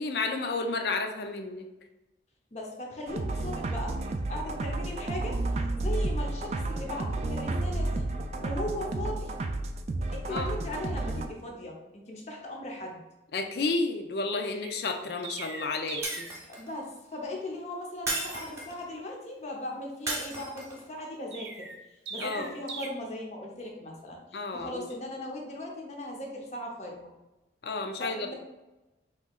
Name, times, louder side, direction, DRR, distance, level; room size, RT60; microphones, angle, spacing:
voice 1, 0.0-1.7 10.3-10.5 13.3-16.3 22.2-22.5 24.3-24.9 27.6-28.3, left 3 dB, 70° left, 5 dB, 0.5 m, -31 dB
voice 2, 2.5-8.1 8.4-9.3 10.1-13.0 16.5-21.7 22.1-27.1 28.0-28.3, left 1 dB, 40° left, 0 dB, 0.8 m, -38 dB
sound 1, 3.1-11.3, right 2 dB, 35° right, 0.3 m, -31 dB
Chirp tweet, 14.6-16.4 21.3-22.9, right 4 dB, 85° right, 0.6 m, -40 dB
Shatter, 16.0-16.8 18.1-18.9 20.1-20.8, right 2 dB, 15° right, 1.0 m, -34 dB
5.6 x 3.1 x 2.4 m, 1.0 s
head